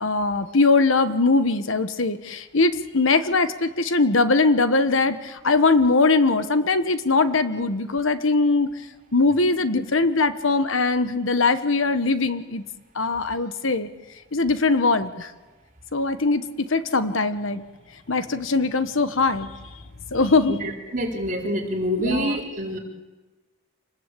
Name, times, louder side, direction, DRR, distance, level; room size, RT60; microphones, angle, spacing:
voice 1, 0.0-8.7 9.1-12.6 12.9-13.9 14.3-15.3 15.9-17.6 18.1-19.5 20.1-20.6 22.0-22.3, left 3 dB, 70° left, 11 dB, 1.3 m, -21 dB
voice 2, 20.5-22.8, equal, 40° right, -1 dB, 4.3 m, -26 dB
27.5 x 20.0 x 8.5 m, 1.2 s
head